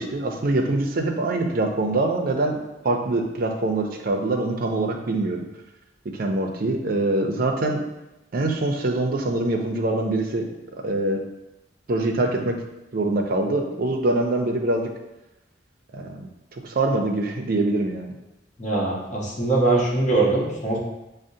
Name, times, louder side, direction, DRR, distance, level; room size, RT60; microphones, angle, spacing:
voice 1, 0.0-2.6 2.8-5.5 6.1-7.8 8.3-11.2 11.9-12.6 12.9-14.9 15.9-16.3 16.6-18.1, right 2 dB, 55° right, 3 dB, 0.5 m, -24 dB
voice 2, 18.6-20.8, right 2 dB, 40° left, -5 dB, 1.1 m, -22 dB
6.2 x 2.1 x 2.7 m, 0.96 s
head